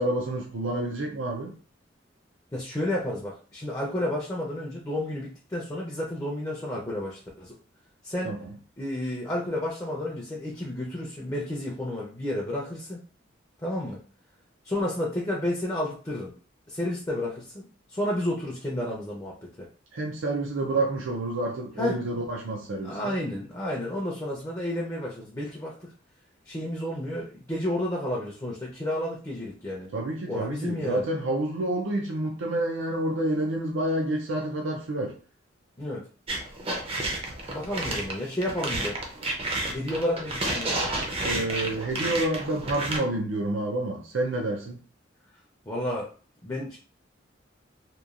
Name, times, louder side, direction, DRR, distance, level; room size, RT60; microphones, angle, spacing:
voice 1, 0.0-1.5 8.2-8.5 19.9-23.2 29.9-35.2 41.2-44.8, right 1 dB, 85° right, 0.5 m, -29 dB
voice 2, 2.5-7.6 8.0-8.3 8.8-13.0 13.6-14.0 14.6-16.3 16.7-19.7 21.8-22.0 22.8-25.9 26.4-29.9 30.3-31.0 35.8-36.0 37.5-39.0 39.7-40.7 45.7-46.1 46.4-46.8, left 1 dB, 15° left, 0.5 m, -31 dB
sound 1, 36.3-43.0, right 2 dB, 30° right, 0.5 m, -31 dB
3.0 x 2.2 x 2.4 m
head